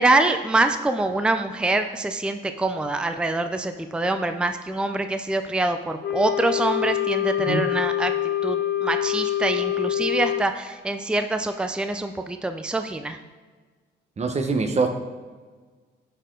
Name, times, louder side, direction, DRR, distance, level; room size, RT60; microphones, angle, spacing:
voice 1, 0.0-8.1 8.4-13.2, right 2 dB, 5° right, 8 dB, 0.5 m, -25 dB
Wind instrument woodwind instrument, 6.0-10.5, left 12 dB, 55° left, 0.8 m, -25 dB
voice 2, 14.2-14.9, right 4 dB, 35° right, 5 dB, 1.1 m, -23 dB
11.0 x 4.6 x 3.8 m, 1.4 s
cardioid pair, 90°, 20 cm